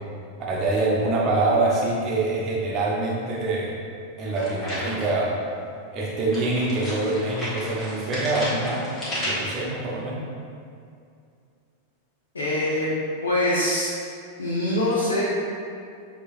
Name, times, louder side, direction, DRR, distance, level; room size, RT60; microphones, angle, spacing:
voice 1, 0.5-3.7 4.2-5.3 5.9-8.8 9.2-10.2, right 2 dB, 30° right, -4 dB, 0.9 m, -25 dB
sound 1, 4.3-5.3 6.3-9.6, equal, 20° left, 1.4 m, -32 dB
voice 2, 12.3-12.9 13.2-13.9 14.4-15.3, left 1 dB, 75° left, -8 dB, 0.7 m, -23 dB
6.5 x 2.9 x 2.6 m, 2.4 s
figure-of-eight pair, 90°, 0 cm